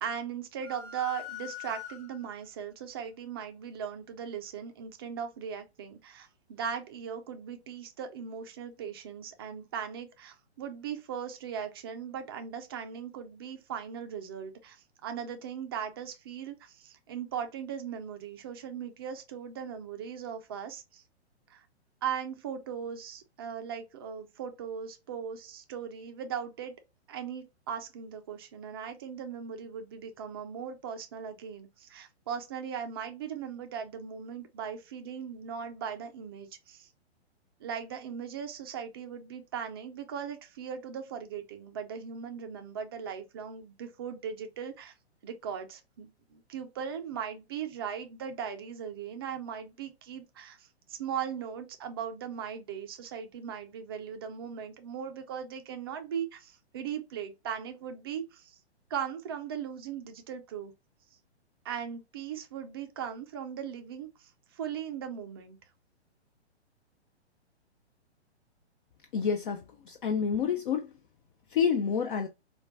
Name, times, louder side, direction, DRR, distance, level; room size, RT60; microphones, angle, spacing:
voice 1, 0.0-21.0 21.5-21.6 22.0-26.7 27.1-36.9 37.6-44.9 45.2-58.6 58.9-60.7 61.6-65.6, right 8 dB, 25° right, 0.3 m, -38 dB
sound 1, 0.6-2.4, left 10 dB, 30° left, 1.4 m, -43 dB
voice 2, 69.1-70.9 71.5-72.3, left 6 dB, 50° left, 0.5 m, -28 dB
4.3 x 2.2 x 2.5 m
figure-of-eight pair, 120°, 34 cm